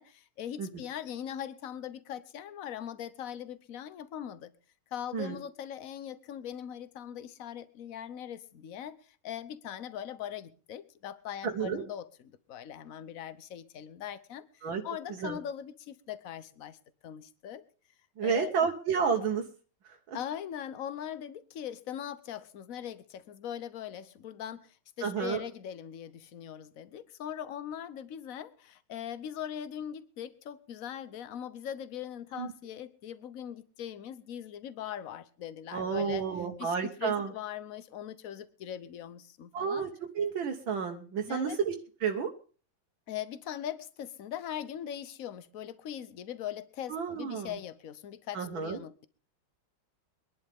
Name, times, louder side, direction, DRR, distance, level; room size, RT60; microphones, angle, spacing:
voice 1, 0.0-4.5 4.9-9.0 9.2-16.8 17.0-17.6 18.2-18.7 20.1-36.3 36.6-39.8 41.3-41.6 43.1-49.1, left 9 dB, 55° left, 1.2 m, -41 dB
voice 2, 11.4-11.8 14.6-14.8 15.2-15.4 18.2-19.4 19.8-20.2 25.0-25.4 32.4-32.5 35.7-37.3 39.5-41.7 42.0-42.3 46.9-47.5 48.3-48.8, right 6 dB, 80° right, 2.0 m, -31 dB
24.0 x 11.0 x 3.6 m
omnidirectional pair, 2.2 m